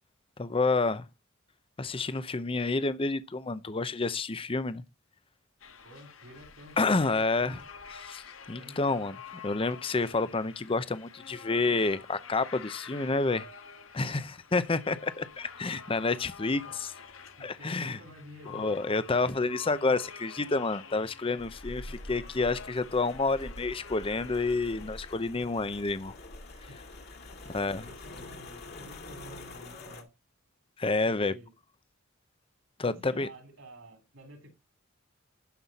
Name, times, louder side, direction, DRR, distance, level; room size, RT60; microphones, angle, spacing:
voice 1, 0.4-1.0 1.8-4.8 6.8-7.6 8.0-8.2 8.5-9.1 9.4-13.5 13.9-16.6 17.4-18.0 18.5-21.8 22.1-26.1 27.5-27.8 30.8-31.3 32.8-33.3, left 3 dB, 25° left, 0.6 m, -29 dB
sound 1, 5.6-25.2, left 6 dB, 75° left, 1.3 m, -48 dB
voice 2, 5.8-7.6 8.5-8.9 13.9-14.3 16.6-16.8 17.4-18.8 19.9-20.1 21.2-21.5 21.8-22.0 26.5-26.8 27.2-30.1 31.0-31.5 32.8-34.5, equal, 70° right, 3.3 m, -51 dB
sound 2, 21.4-30.0, left 2 dB, 50° left, 2.3 m, -45 dB
12.0 x 5.6 x 4.1 m
head